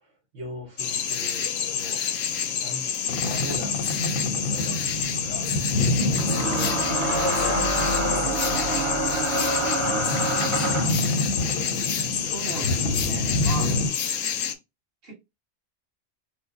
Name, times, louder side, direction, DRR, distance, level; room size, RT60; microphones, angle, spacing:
voice 1, 0.0-2.0 2.6-2.9 3.1-3.8 4.3-5.5 6.0-10.5, equal, 75° right, 1.4 m, -41 dB
sound 1, 0.8-14.5, left 8 dB, 85° left, 1.0 m, -28 dB
Boat Water vehicle, 3.1-13.9, left 2 dB, 55° left, 0.7 m, -28 dB
sound 2, 4.2-4.3 6.2-11.0, right 2 dB, 30° right, 0.6 m, -26 dB
voice 2, 12.2-13.8 15.0-15.1, right 4 dB, 50° right, 1.8 m, -36 dB
4.6 x 2.0 x 2.6 m
omnidirectional pair, 1.3 m